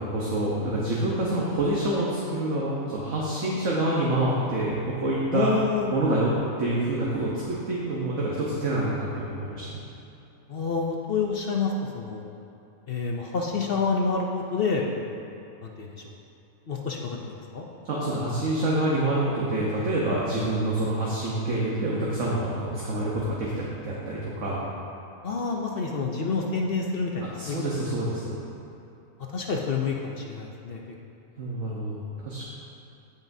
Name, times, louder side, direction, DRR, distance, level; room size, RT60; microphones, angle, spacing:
voice 1, 0.0-5.5 5.9-6.3 6.6-9.8 17.8-24.6 27.4-28.4 31.4-32.4, right 1 dB, 60° right, -6 dB, 1.4 m, -27 dB
voice 2, 5.3-5.9 10.5-12.3 12.9-15.2 15.6-16.0 16.7-17.7 25.2-27.6 29.3-30.8, left 4 dB, 50° left, 0 dB, 0.7 m, -28 dB
16.5 x 5.5 x 2.7 m, 2.8 s
omnidirectional pair, 1.5 m